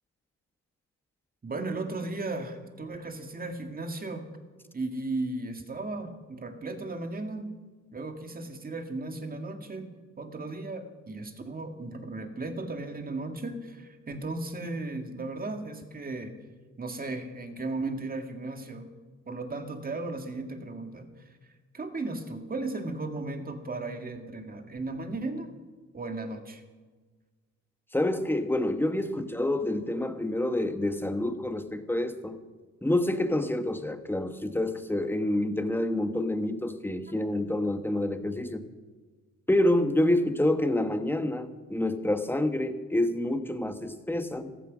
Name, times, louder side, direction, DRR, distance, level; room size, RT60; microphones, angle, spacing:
voice 1, 1.4-4.3 4.7-7.5 7.9-9.9 10.2-16.4 16.8-18.9 19.3-21.1 21.7-25.5 25.9-26.6, right 2 dB, 30° right, 6 dB, 2.1 m, -35 dB
voice 2, 27.9-32.4 32.8-38.6 39.5-44.5, left 1 dB, 5° left, 8 dB, 1.3 m, -27 dB
15.0 x 13.5 x 6.3 m, 1.4 s
cardioid pair, 90°, 30 cm